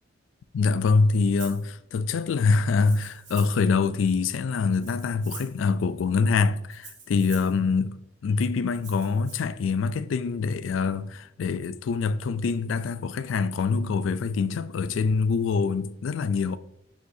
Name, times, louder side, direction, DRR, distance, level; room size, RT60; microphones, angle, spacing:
voice 1, 0.5-7.9 8.2-16.6, left 4 dB, 90° left, 0.4 m, -25 dB
Rattle (instrument), 1.4-1.6 2.7-3.7 4.7-5.6 6.7-7.6 8.7-9.4, right 4 dB, 70° right, 1.9 m, -44 dB
9.4 x 4.3 x 2.6 m
head